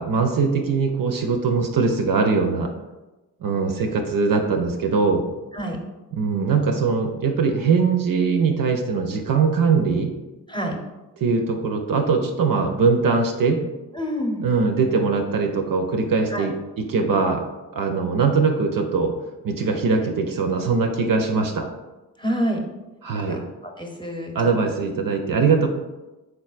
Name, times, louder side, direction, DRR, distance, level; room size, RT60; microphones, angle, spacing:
voice 1, 0.0-2.7 3.4-5.2 6.2-10.1 11.2-13.6 14.4-17.4 17.7-19.1 19.4-21.7 23.0-23.4 24.3-25.7, right 4 dB, 55° right, 4 dB, 0.6 m, -21 dB
voice 2, 13.9-14.4 16.3-16.5 22.2-22.7 23.3-24.3, equal, 10° left, 1 dB, 0.8 m, -27 dB
3.8 x 3.3 x 2.4 m, 1.1 s
supercardioid pair, 40°, 39 cm